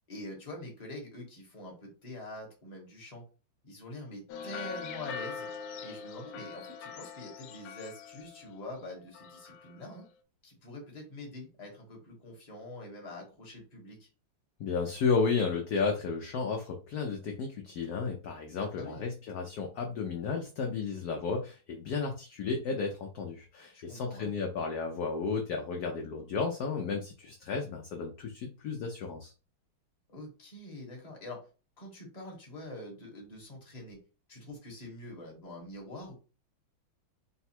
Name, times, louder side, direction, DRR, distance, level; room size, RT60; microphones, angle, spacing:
voice 1, 0.1-3.2 3.6-5.5 5.8-10.0 10.4-14.1 18.6-19.0 23.7-24.3 30.1-31.4 31.8-34.0 34.3-36.1, left 1 dB, 25° left, -1 dB, 1.1 m, -45 dB
sound 1, 4.3-8.9 9.1-9.9, left 6 dB, 90° left, 1.4 m, -43 dB
voice 2, 14.6-29.3, left 4 dB, 70° left, 2 dB, 0.9 m, -33 dB
4.0 x 2.3 x 4.3 m, 0.33 s
omnidirectional pair, 2.3 m